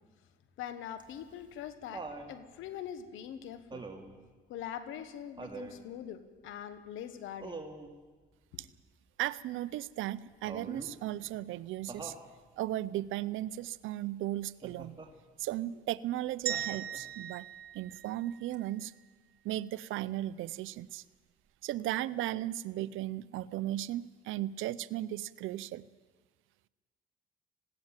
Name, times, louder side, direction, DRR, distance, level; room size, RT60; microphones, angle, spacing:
voice 1, 0.6-3.9 4.5-7.6, left 9 dB, 90° left, 11 dB, 1.3 m, -43 dB
Laughter, 1.0-2.3 3.7-4.2 5.4-5.8 7.4-7.9 10.5-11.0 11.9-12.3 14.6-15.1 16.5-17.1 18.5-18.6, right 3 dB, 25° right, 2.6 m, -44 dB
voice 2, 9.2-12.1 12.6-15.0 15.4-17.4 17.7-18.9 19.4-21.0 21.6-25.9, right 14 dB, 90° right, 18 dB, 0.6 m, -36 dB
sound 1, 16.5-18.7, right 9 dB, 50° right, 1.2 m, -39 dB
20.0 x 16.5 x 9.0 m, 1.3 s
cardioid pair, 90°, 20 cm